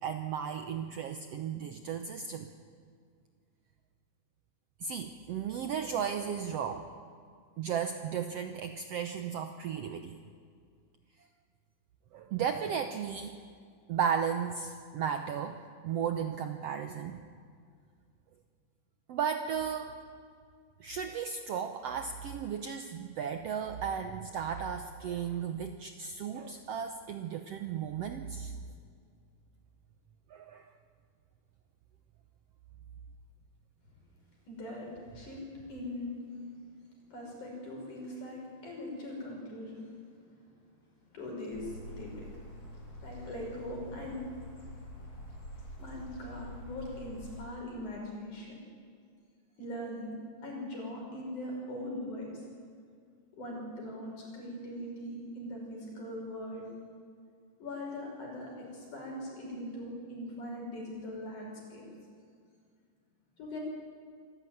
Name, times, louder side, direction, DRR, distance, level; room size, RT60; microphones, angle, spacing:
voice 1, 0.0-2.5 4.8-6.9 7.6-10.2 12.1-13.4 13.9-15.6 15.8-17.2 19.1-19.9 20.8-28.5 30.3-30.7, right 7 dB, 70° right, 7 dB, 1.5 m, -35 dB
voice 2, 34.5-35.4 35.7-36.5 37.1-39.9 41.1-42.3 42.5-44.5 45.1-45.3 45.8-48.6 49.6-50.1 50.4-52.3 53.4-56.7 57.6-61.9 63.4-63.6, left 1 dB, 65° left, -1 dB, 7.2 m, -41 dB
sound 1, 41.5-47.4, equal, 50° left, 6.3 m, -46 dB
24.5 x 14.5 x 9.2 m, 2.2 s
omnidirectional pair, 3.8 m